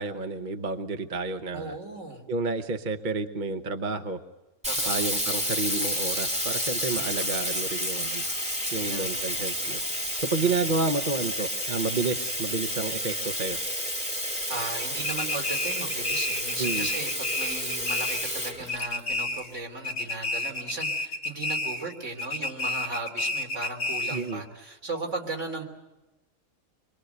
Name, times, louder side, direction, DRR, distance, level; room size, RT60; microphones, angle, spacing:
voice 1, 0.0-1.8 2.3-4.2 4.8-8.3 8.7-9.8 10.2-13.6 16.6-16.9 24.1-24.4, right 3 dB, 40° right, 6 dB, 1.1 m, -30 dB
voice 2, 1.5-2.3 4.7-5.5 6.9-7.3 8.7-9.3 10.3-10.7 14.5-25.6, right 2 dB, 65° right, 1 dB, 3.6 m, -37 dB
Sink (filling or washing), 4.6-19.4, equal, 5° right, 2.0 m, -30 dB
sound 1, 15.0-18.4 18.7-19.6 19.8-21.9 22.2-24.3, left 2 dB, 55° left, 2.3 m, -31 dB
25.5 x 23.5 x 8.0 m, 1.0 s
omnidirectional pair, 1.3 m